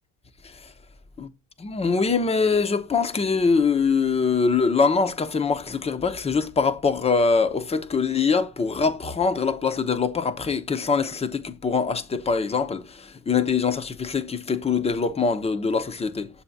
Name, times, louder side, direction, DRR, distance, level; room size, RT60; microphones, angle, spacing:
voice 1, 1.6-16.3, left 5 dB, 15° left, 0.7 m, -23 dB
7.0 x 2.8 x 5.7 m
supercardioid pair, 100°, 47 cm